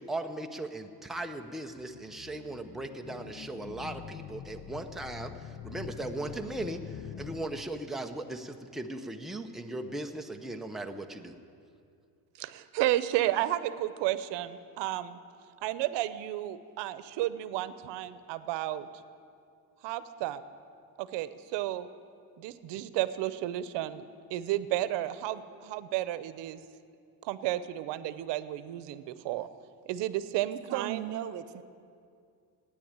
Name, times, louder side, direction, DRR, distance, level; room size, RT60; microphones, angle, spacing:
voice 1, 0.0-11.4, right 2 dB, ahead, 3 dB, 0.8 m, -38 dB
sound 1, 1.8-8.1, left 9 dB, 35° left, 0.5 m, -45 dB
voice 2, 12.4-15.2 15.6-18.9 19.8-20.4 21.0-21.9 22.4-26.6 27.2-29.5 29.9-31.0, right 14 dB, 75° right, 14 dB, 0.9 m, -32 dB
voice 3, 30.7-31.6, right 12 dB, 45° right, 8 dB, 0.7 m, -35 dB
16.0 x 10.0 x 8.8 m, 2.4 s
cardioid pair, 130°, 42 cm